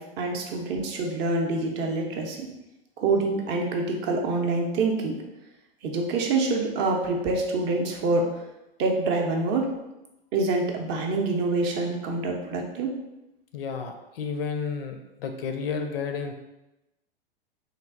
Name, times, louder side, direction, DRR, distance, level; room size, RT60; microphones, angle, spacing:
voice 1, 0.0-2.5 3.0-5.2 5.8-8.3 8.8-9.7 10.3-12.9, right 3 dB, 35° right, 1 dB, 0.5 m, -26 dB
voice 2, 13.5-16.3, left 5 dB, 70° left, 5 dB, 0.5 m, -31 dB
3.2 x 2.0 x 2.4 m, 0.94 s
hypercardioid pair, 95°, 30 cm